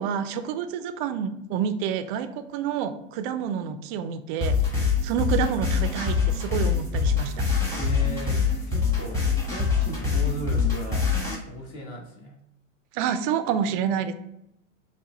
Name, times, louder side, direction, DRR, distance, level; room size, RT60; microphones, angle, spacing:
voice 1, 0.0-4.5 5.0-7.4 12.9-14.1, right 8 dB, 40° right, 10 dB, 0.4 m, -28 dB
sound 1, 4.4-11.3, left 5 dB, 10° left, 1.4 m, -24 dB
voice 2, 7.8-11.0 11.5-12.3, equal, 35° left, 0 dB, 1.3 m, -37 dB
5.5 x 2.2 x 3.0 m, 0.83 s
hypercardioid pair, 100°, 39 cm